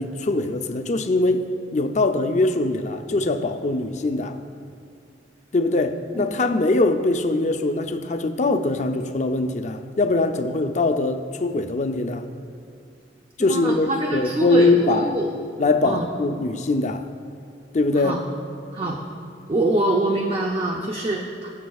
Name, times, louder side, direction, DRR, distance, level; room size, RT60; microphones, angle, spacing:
voice 1, 0.0-4.4 5.5-12.3 13.4-15.2 15.6-17.1 17.7-18.2, left 2 dB, 40° left, 7 dB, 0.5 m, -22 dB
voice 2, 13.4-15.3 15.9-16.1 18.0-18.2 18.7-19.0 19.5-21.5, right 1 dB, 30° right, -1 dB, 0.7 m, -24 dB
20.5 x 7.3 x 2.4 m, 2.3 s
head